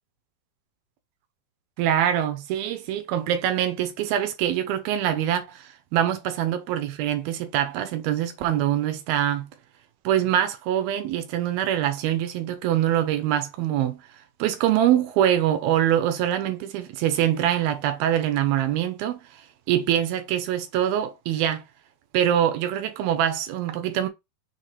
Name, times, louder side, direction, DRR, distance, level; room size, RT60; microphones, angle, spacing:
voice 1, 1.8-9.5 10.0-14.0 14.4-19.2 19.7-21.6 22.1-24.1, right 11 dB, 80° right, 2.6 m, -24 dB
6.6 x 3.2 x 4.4 m
omnidirectional pair, 4.6 m